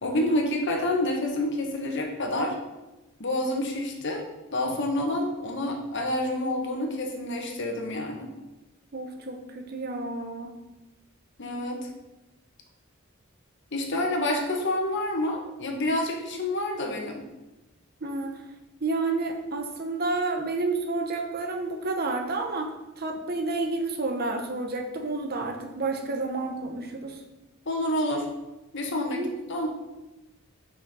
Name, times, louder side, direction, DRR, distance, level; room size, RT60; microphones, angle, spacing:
voice 1, 0.0-2.5 3.2-4.2 4.5-8.3 11.4-11.9 13.7-17.2 27.7-28.3 28.7-29.2 29.5-29.7, left 1 dB, 60° left, 2 dB, 1.3 m, -28 dB
voice 2, 8.9-10.5 18.0-18.4 18.8-27.2 29.0-29.3, right 3 dB, 50° right, 4 dB, 0.9 m, -30 dB
5.7 x 5.6 x 5.6 m, 1.0 s
head